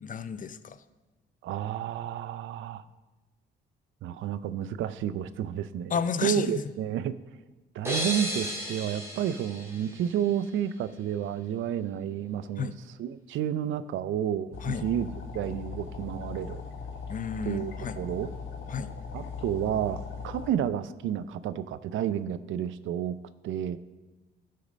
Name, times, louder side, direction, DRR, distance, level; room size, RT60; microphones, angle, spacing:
voice 1, 0.0-0.8 5.9-6.6 12.6-12.7 14.6-14.9 17.1-18.0 18.7-18.9, left 6 dB, 40° left, 13 dB, 0.6 m, -32 dB
voice 2, 1.4-2.8 4.0-7.1 7.7-12.7 13.0-15.1 15.3-16.6 17.4-18.3 19.1-23.2 23.4-23.8, right 10 dB, 80° right, 15 dB, 0.5 m, -31 dB
sound 1, 7.8-10.6, right 1 dB, 15° right, 2.7 m, -34 dB
sound 2, 14.5-20.5, left 5 dB, 80° left, 1.5 m, -39 dB
12.0 x 6.6 x 5.3 m, 1.2 s
cardioid pair, 90°, 20 cm